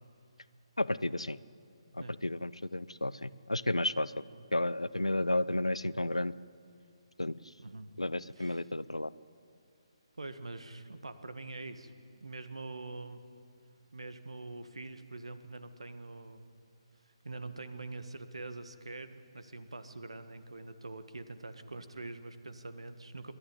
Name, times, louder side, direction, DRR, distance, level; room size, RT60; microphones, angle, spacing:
voice 1, 0.8-1.4 1.9-4.2 4.5-6.3 7.2-7.3 8.0-9.1, left 1 dB, 90° left, 18 dB, 0.6 m, -32 dB
voice 2, 7.6-7.9 8.4-8.7 10.2-11.9 12.2-13.2 13.9-16.4 17.2-23.3, right 2 dB, 75° right, 11 dB, 1.5 m, -44 dB
26.5 x 11.5 x 9.7 m, 2.4 s
figure-of-eight pair, 140°, 3 cm